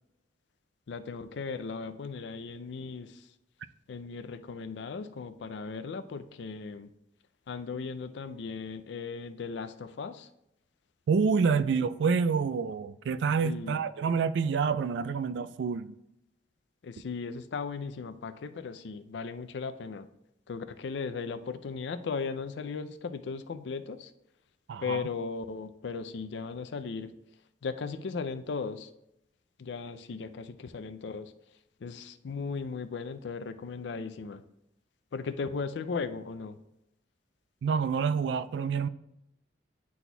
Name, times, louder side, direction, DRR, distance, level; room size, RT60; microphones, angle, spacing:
voice 1, 0.9-3.2 3.9-6.9 7.5-10.3 13.4-13.8 16.8-20.1 20.5-24.1 24.8-27.2 27.6-28.9 29.6-31.3 31.8-34.4 35.1-36.6, left 5 dB, 70° left, 0.4 m, -37 dB
voice 2, 11.1-15.9 24.7-25.1 37.6-38.9, right 5 dB, 75° right, 0.3 m, -27 dB
10.5 x 4.1 x 2.3 m
head